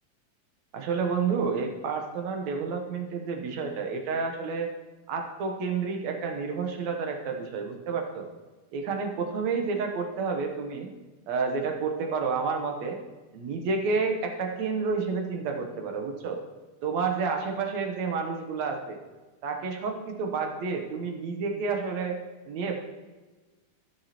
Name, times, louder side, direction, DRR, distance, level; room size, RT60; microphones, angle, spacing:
voice 1, 0.7-4.7 5.1-8.3 8.7-10.9 11.3-13.0 13.3-16.4 16.8-19.0 19.4-22.2 22.5-22.9, right 5 dB, 70° right, 3 dB, 2.1 m, -30 dB
16.5 x 6.1 x 3.0 m, 1.2 s
omnidirectional pair, 3.6 m